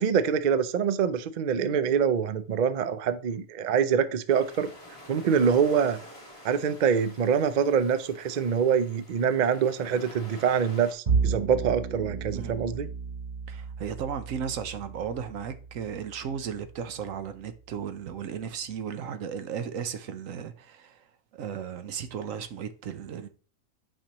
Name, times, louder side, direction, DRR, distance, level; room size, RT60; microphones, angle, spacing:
voice 1, 0.0-4.7 5.1-6.0 6.4-12.9, right 7 dB, 50° right, 0.5 m, -25 dB
sound 1, 4.3-10.9, left 1 dB, 25° left, 2.4 m, -49 dB
Bowed string instrument, 11.1-17.5, right 5 dB, 35° right, 1.1 m, -33 dB
voice 2, 13.5-21.0 21.3-23.3, right 7 dB, 85° right, 1.1 m, -35 dB
8.6 x 5.3 x 3.0 m
omnidirectional pair, 1.4 m